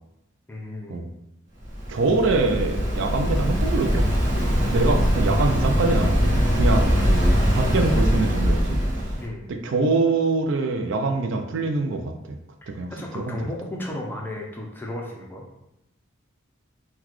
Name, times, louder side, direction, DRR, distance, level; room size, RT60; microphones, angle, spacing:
voice 1, 0.5-1.0 9.2-9.5 12.6-15.4, left 1 dB, 10° left, -1 dB, 0.4 m, -34 dB
Waves surf, 1.6-9.2, equal, 40° right, 1.0 m, -22 dB
voice 2, 1.9-4.1 4.4-9.1 9.5-12.1 12.7-13.4, right 3 dB, 60° right, 5 dB, 0.3 m, -24 dB
3.9 x 2.2 x 3.0 m, 0.89 s
head